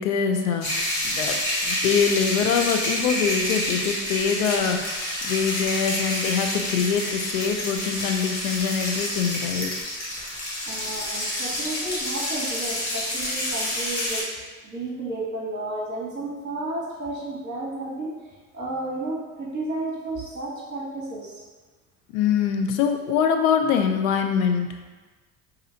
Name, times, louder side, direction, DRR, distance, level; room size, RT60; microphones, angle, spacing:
voice 1, 0.0-9.7 22.1-24.7, left 7 dB, 85° left, 6 dB, 0.5 m, -24 dB
sound 1, 0.6-14.2, left 1 dB, 40° left, 1.4 m, -28 dB
voice 2, 10.7-14.2 14.6-18.1 18.5-21.4, right 2 dB, 25° right, -4 dB, 1.0 m, -32 dB
5.0 x 2.7 x 2.7 m, 1.3 s
supercardioid pair, 75°, 40 cm